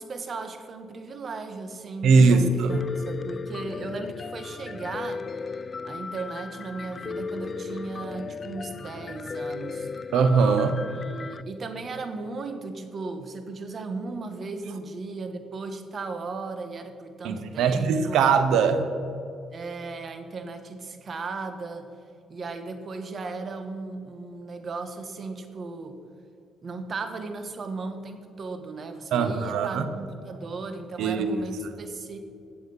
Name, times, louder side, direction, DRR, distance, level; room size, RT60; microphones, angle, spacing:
voice 1, 0.0-5.2 5.8-9.9 10.9-18.3 19.5-21.9 22.3-26.0 26.6-32.2, right 3 dB, 45° right, 8 dB, 1.4 m, -36 dB
voice 2, 2.0-2.8 10.1-10.8 17.2-18.8 29.1-29.8 31.0-31.4, right 5 dB, 80° right, 10 dB, 1.1 m, -21 dB
Piano, 2.7-11.4, left 4 dB, 40° left, 0.4 m, -36 dB
14.5 x 7.8 x 5.5 m, 2.6 s
cardioid pair, 90°, 0 cm